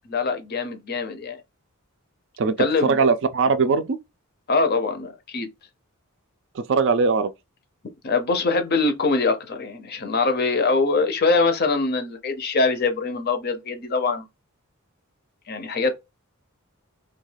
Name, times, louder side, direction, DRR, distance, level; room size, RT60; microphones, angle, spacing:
voice 1, 0.1-1.4 2.6-3.0 4.5-5.5 8.0-14.2 15.5-16.0, left 3 dB, 45° left, 0.5 m, -23 dB
voice 2, 2.8-4.0 6.5-7.3, right 4 dB, 55° right, 0.4 m, -20 dB
2.3 x 2.2 x 3.2 m
head